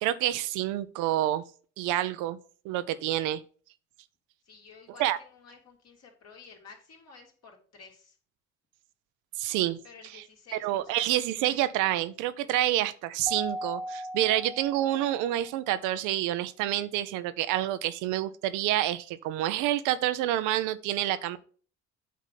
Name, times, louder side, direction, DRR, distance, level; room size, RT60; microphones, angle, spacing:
voice 1, 0.0-1.4 1.8-2.4 2.6-3.4 5.0-5.2 9.4-9.8 10.6-21.4, right 13 dB, 80° right, 0.6 m, -28 dB
voice 2, 4.4-8.2 9.8-11.1, left 5 dB, 55° left, 2.8 m, -52 dB
Keyboard (musical), 13.3-15.5, equal, 5° left, 1.3 m, -38 dB
8.4 x 3.7 x 5.6 m
hypercardioid pair, 55°, 30 cm